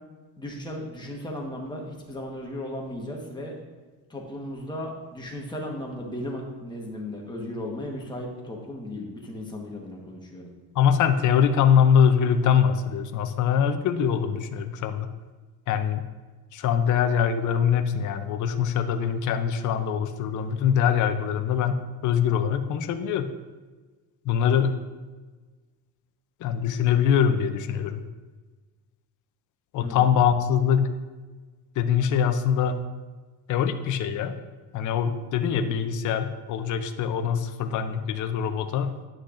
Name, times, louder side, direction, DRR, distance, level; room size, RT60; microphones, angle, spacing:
voice 1, 0.4-3.6 4.1-10.5 29.8-30.1, left 1 dB, 10° left, -1 dB, 1.2 m, -36 dB
voice 2, 10.8-15.1 15.7-16.0 16.5-23.3 24.3-24.8 26.4-28.0 29.7-30.9 31.8-32.8 33.5-34.3 34.7-38.9, left 8 dB, 50° left, 8 dB, 0.6 m, -23 dB
9.8 x 6.3 x 2.5 m, 1.3 s
cardioid pair, 145°, 39 cm